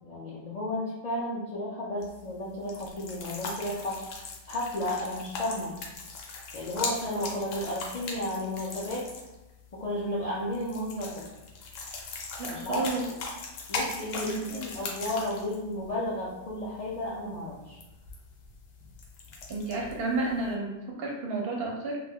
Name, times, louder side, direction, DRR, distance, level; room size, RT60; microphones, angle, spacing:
voice 1, 0.0-4.0 4.5-5.7 6.5-9.0 9.7-11.1 12.5-12.8 13.7-17.8, left 1 dB, 55° left, -7 dB, 0.4 m, -33 dB
sound 1, 2.0-20.5, left 3 dB, 90° left, 0.9 m, -40 dB
voice 2, 12.4-13.1 14.1-14.6 19.5-22.0, right 3 dB, 65° right, -2 dB, 0.7 m, -31 dB
2.2 x 2.1 x 3.4 m, 1.0 s
omnidirectional pair, 1.2 m